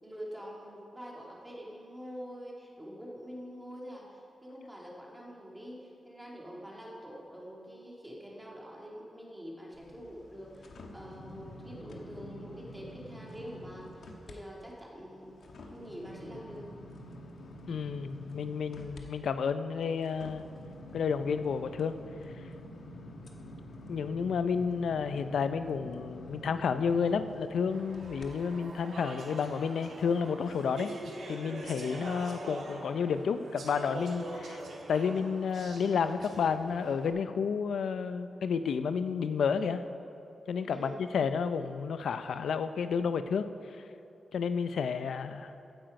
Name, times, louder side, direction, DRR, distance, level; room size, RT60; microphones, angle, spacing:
voice 1, 0.0-15.3 15.7-16.7 31.9-32.1 40.7-41.0, equal, 5° right, -4 dB, 2.2 m, -45 dB
sound 1, 9.7-14.4 14.8-28.3 28.8-28.9, equal, 65° left, 1.2 m, -48 dB
voice 2, 17.7-20.4 20.9-21.9 23.9-34.6 34.9-39.8 40.5-43.5 44.3-45.5, left 6 dB, 90° left, 10 dB, 0.4 m, -31 dB
Speech / Chatter, 27.7-37.1, right 2 dB, 65° right, 1.8 m, -44 dB
15.5 x 8.8 x 5.2 m, 2.8 s
wide cardioid pair, 170°, 0 cm